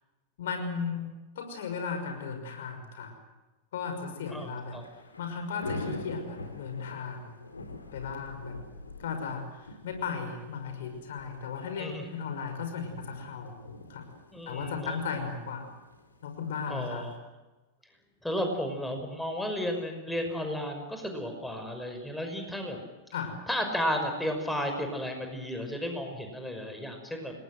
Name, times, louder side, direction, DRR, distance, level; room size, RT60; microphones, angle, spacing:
voice 1, 0.4-1.1 1.4-3.1 3.7-4.8 5.2-7.3 7.9-8.6 9.0-13.5 13.9-14.0 14.5-15.7 16.2-17.1 23.1-23.4, left 5 dB, 60° left, 6 dB, 5.9 m, -36 dB
Thunder / Rain, 4.5-17.2, left 2 dB, 75° left, 3.6 m, -45 dB
voice 2, 14.3-15.0 16.7-17.1 18.2-22.8 23.5-27.4, equal, 5° left, 4 dB, 5.8 m, -33 dB
29.5 x 21.0 x 7.9 m, 1.1 s
figure-of-eight pair, 90°, 0 cm